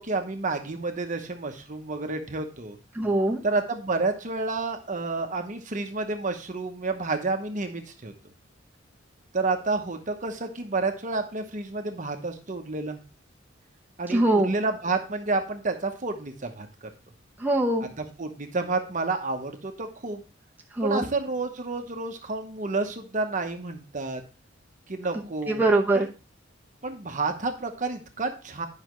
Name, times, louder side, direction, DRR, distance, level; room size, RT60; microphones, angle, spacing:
voice 1, 0.0-2.8 3.4-8.1 9.3-13.0 14.0-16.9 18.0-20.2 20.8-24.2 24.9-25.6 26.8-28.7, right 3 dB, 40° right, 5 dB, 1.0 m, -30 dB
voice 2, 2.9-3.4 14.1-14.5 17.4-17.8 20.8-21.0 25.5-26.1, right 2 dB, 10° right, -1 dB, 0.9 m, -22 dB
10.5 x 5.7 x 3.1 m, 0.34 s
head